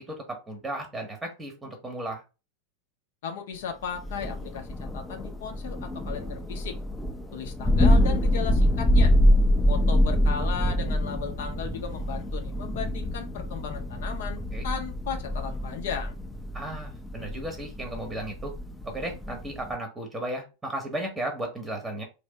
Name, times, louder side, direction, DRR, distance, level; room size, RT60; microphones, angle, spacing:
voice 1, 0.0-2.2 14.5-14.7 16.5-18.5 18.8-22.0, right 1 dB, 10° right, 3 dB, 0.9 m, -35 dB
voice 2, 3.2-6.8 7.3-9.2 9.7-16.1, left 7 dB, 55° left, 4 dB, 0.6 m, -36 dB
Thunder, 4.0-19.8, left 1 dB, 5° left, 0.5 m, -25 dB
3.2 x 2.6 x 3.3 m, 0.30 s
figure-of-eight pair, 90°, 0 cm